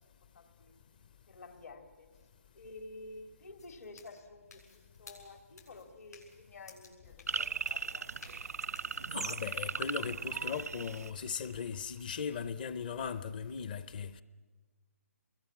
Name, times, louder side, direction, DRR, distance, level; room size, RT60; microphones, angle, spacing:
voice 1, 0.3-0.7 1.3-2.1 2.5-8.1, left 3 dB, 70° left, 3.5 m, -51 dB
sound 1, 3.6-9.5, left 4 dB, 90° left, 7.3 m, -57 dB
sound 2, 7.3-11.7, right 5 dB, 80° right, 0.7 m, -37 dB
voice 2, 9.1-14.2, left 6 dB, 35° left, 0.7 m, -38 dB
28.0 x 22.0 x 7.3 m
hypercardioid pair, 165°, 8 cm